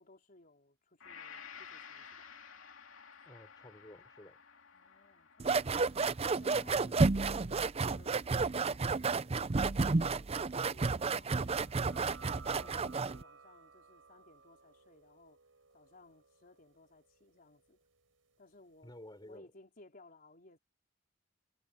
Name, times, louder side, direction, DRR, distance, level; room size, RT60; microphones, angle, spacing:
voice 1, 0.0-2.3 4.7-5.6 6.4-15.4 15.7-17.8 18.4-18.9 19.2-20.6, left 2 dB, 45° left, 4.2 m, -61 dB
Gong, 1.0-9.3 9.8-9.9, left 6 dB, 75° left, 2.7 m, -54 dB
voice 2, 3.3-4.4 6.8-7.2 18.8-19.5, left 1 dB, 20° left, 5.5 m, -52 dB
sound 1, 5.4-13.2, right 4 dB, 30° right, 0.5 m, -31 dB
sound 2, 11.4-18.7, right 5 dB, 70° right, 7.0 m, -58 dB
head